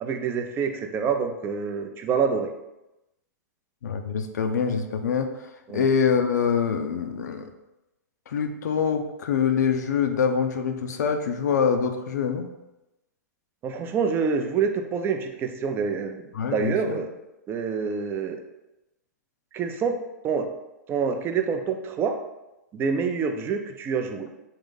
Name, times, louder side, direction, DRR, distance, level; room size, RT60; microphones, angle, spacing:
voice 1, 0.0-2.5 5.7-5.8 13.6-16.2 16.5-17.1 17.5-18.4 19.5-20.0 20.2-20.5 20.9-22.2 22.7-24.3, right 6 dB, 25° right, 6 dB, 0.4 m, -26 dB
voice 2, 3.8-5.3 5.7-7.5 8.3-12.5 16.3-17.0, left 6 dB, 75° left, 7 dB, 0.5 m, -25 dB
3.7 x 2.6 x 3.7 m, 0.97 s
hypercardioid pair, 120°, 9 cm